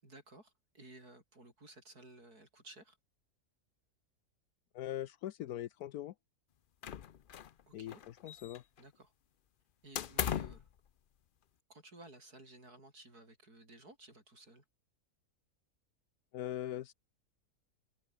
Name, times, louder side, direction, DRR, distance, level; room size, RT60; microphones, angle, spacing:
voice 1, 0.0-3.0 7.7-8.0 8.8-9.1 9.8-10.7 11.7-14.6, right 2 dB, 90° right, 8.2 m, -56 dB
voice 2, 4.7-6.1 7.7-8.6 16.3-16.9, left 12 dB, 80° left, 1.2 m, -41 dB
sound 1, 6.8-7.6 7.9-8.8 9.9-10.7, left 9 dB, 55° left, 0.6 m, -38 dB
omnidirectional pair, 1.6 m